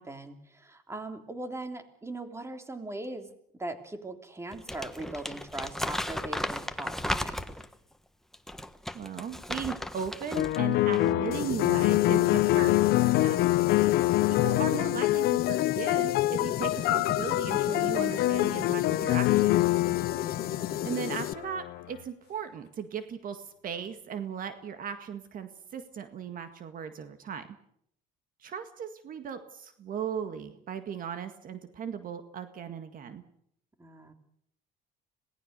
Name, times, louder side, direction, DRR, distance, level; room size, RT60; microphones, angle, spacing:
voice 1, 0.0-3.3 3.6-7.6 20.1-20.8 33.8-34.1, right 2 dB, 15° right, 6 dB, 3.2 m, -40 dB
Crumpling crinkling, 4.5-7.7 8.3-10.6 10.9-11.1, left 1 dB, ahead, 1.4 m, -35 dB
voice 2, 8.9-12.8 13.2-13.4 14.3-19.8 20.8-27.5 28.4-33.2, right 7 dB, 55° right, 8 dB, 1.9 m, -37 dB
sound 1, 10.3-21.9, left 17 dB, 80° left, 0.8 m, -26 dB
sound 2, 11.3-21.3, left 11 dB, 65° left, 1.1 m, -34 dB
27.0 x 18.5 x 6.7 m, 0.72 s
cardioid pair, 110°, 17 cm